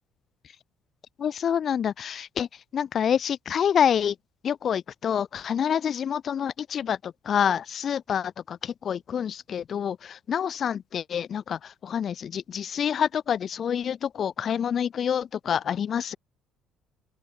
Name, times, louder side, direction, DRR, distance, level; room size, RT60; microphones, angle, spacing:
voice 1, 1.2-4.1 4.4-16.2, left 8 dB, 50° left, 6.1 m, -27 dB
open air
hypercardioid pair, 55°, 0 cm